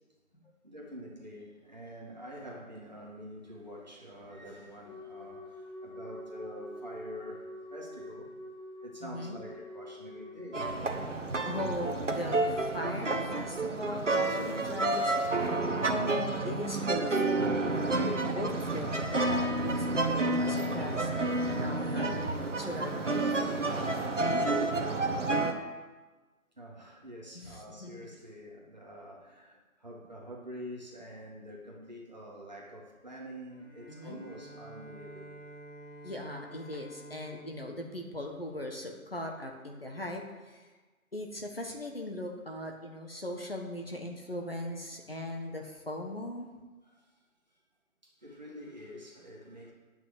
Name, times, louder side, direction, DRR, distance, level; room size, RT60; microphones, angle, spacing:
voice 1, 0.6-8.4 8.8-10.7 26.6-35.4 46.8-47.2 47.5-47.6 48.0-49.7, equal, 30° right, -4 dB, 1.8 m, -46 dB
Wind instrument woodwind instrument, 4.8-10.9, equal, 20° left, 1.9 m, -46 dB
voice 2, 9.0-9.4 11.5-15.6 15.9-18.0 18.3-23.8 27.3-27.9 33.9-34.2 36.0-40.7 41.1-46.5, left 1 dB, 40° left, 1 dB, 1.3 m, -39 dB
sound 1, 10.5-25.5, right 2 dB, 55° right, 1.3 m, -30 dB
Bowed string instrument, 33.5-39.0, right 2 dB, 55° left, 2.2 m, -50 dB
9.5 x 5.7 x 8.1 m, 1.3 s
figure-of-eight pair, 175°, 42 cm